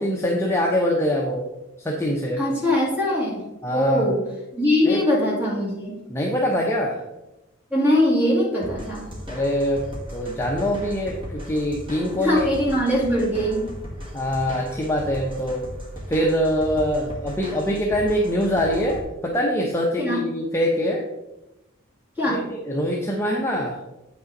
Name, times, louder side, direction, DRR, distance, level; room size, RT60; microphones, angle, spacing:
voice 1, 0.0-1.5 1.8-2.4 3.6-4.2 4.9-5.0 6.1-7.0 9.3-12.5 14.1-15.6 16.1-21.0 22.3-23.8, equal, 10° left, -2 dB, 0.7 m, -24 dB
voice 2, 2.4-3.4 3.7-4.2 4.5-6.0 7.7-9.1 12.2-13.6 20.0-20.2 22.2-22.4, left 1 dB, 10° right, -5 dB, 2.4 m, -21 dB
sound 1, 8.6-19.0, equal, 25° right, 1.6 m, -36 dB
8.4 x 5.6 x 3.8 m, 0.96 s
head